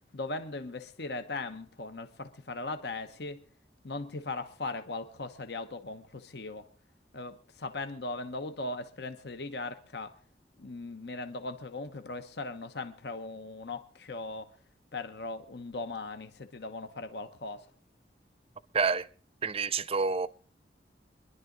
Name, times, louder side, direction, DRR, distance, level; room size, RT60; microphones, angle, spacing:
voice 1, 0.1-3.4 3.8-6.7 7.1-10.2 10.6-14.5 14.9-17.7, left 3 dB, 65° left, 1.0 m, -39 dB
voice 2, 18.7-19.1 19.4-20.3, right 5 dB, 35° right, 0.6 m, -28 dB
24.5 x 11.0 x 3.9 m
head